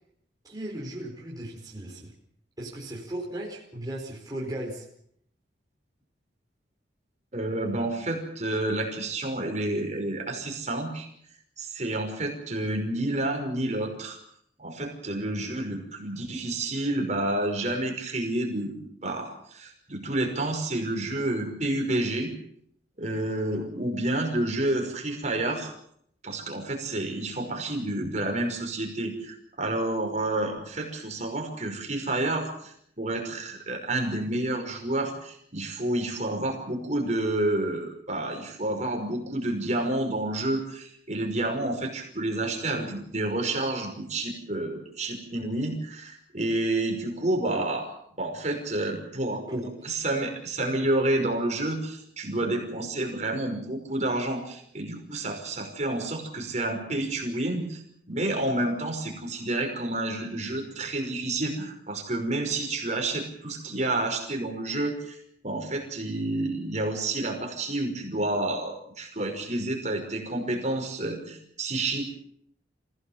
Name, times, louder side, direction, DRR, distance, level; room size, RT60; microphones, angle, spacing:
voice 1, 0.4-2.1 2.6-4.8 49.5-49.7, right 1 dB, 20° right, -4 dB, 4.7 m, -36 dB
voice 2, 7.3-11.1 11.6-14.2 14.6-22.3 23.0-25.7 26.2-47.9 48.2-57.8 58.1-65.2 65.4-72.0, right 2 dB, 40° right, 2 dB, 5.5 m, -29 dB
26.5 x 17.0 x 7.3 m, 0.69 s
head